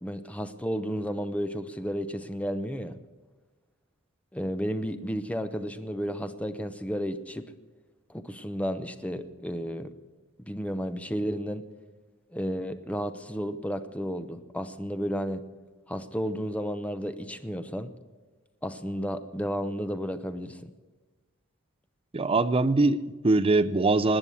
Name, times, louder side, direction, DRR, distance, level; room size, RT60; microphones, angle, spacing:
voice 1, 0.0-3.0 4.3-7.5 8.1-9.9 10.4-11.7 12.3-15.4 15.9-17.9 18.6-20.7, equal, 5° left, 9 dB, 0.7 m, -32 dB
voice 2, 22.1-24.2, right 3 dB, 25° right, 11 dB, 0.5 m, -22 dB
18.5 x 9.8 x 7.0 m, 1.3 s
head